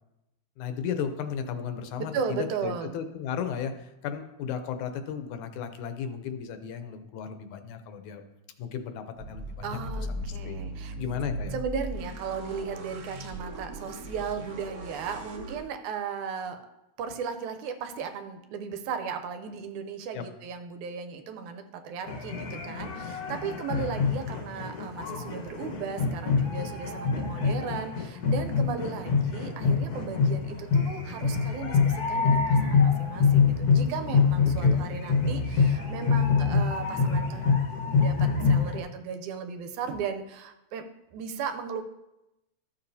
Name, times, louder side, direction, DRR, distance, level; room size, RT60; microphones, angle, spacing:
voice 1, 0.6-8.2 8.6-9.8 10.1-10.6 10.9-11.6 20.1-20.2 23.7-23.9 34.6-34.9, left 7 dB, 80° left, 8 dB, 2.1 m, -35 dB
voice 2, 2.1-2.9 9.6-11.0 11.5-16.6 17.0-37.5 38.0-40.8 41.1-41.8, right 6 dB, 80° right, 6 dB, 2.1 m, -36 dB
sound 1, 9.2-15.6, right 1 dB, 55° right, 1.9 m, -38 dB
sound 2, 22.1-38.8, left 5 dB, 55° left, 1.0 m, -25 dB
13.5 x 7.0 x 2.7 m, 0.94 s
omnidirectional pair, 3.5 m